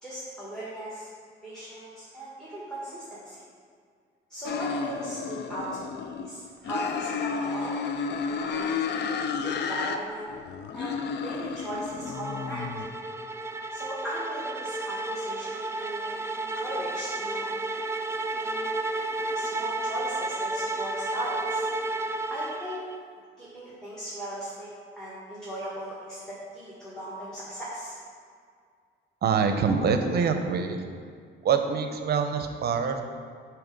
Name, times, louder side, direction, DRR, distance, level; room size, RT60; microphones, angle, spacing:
voice 1, 0.0-1.1 1.4-3.4 4.3-7.7 8.1-9.0 9.4-10.3 10.7-12.6 13.7-17.5 18.4-18.7 19.2-21.7 21.9-22.8 23.4-24.7 25.0-27.9 29.6-29.7, right 1 dB, 5° left, -8 dB, 1.4 m, -38 dB
sound 1, 4.4-6.3 6.6-10.0 10.3-12.9, left 6 dB, 60° left, 0.4 m, -32 dB
sound 2, 11.7-23.0, right 2 dB, 15° right, 0.3 m, -32 dB
voice 2, 29.2-30.8 31.4-33.0, right 6 dB, 55° right, 6 dB, 0.6 m, -25 dB
7.0 x 2.9 x 5.1 m, 2.1 s
cardioid pair, 90°, 20 cm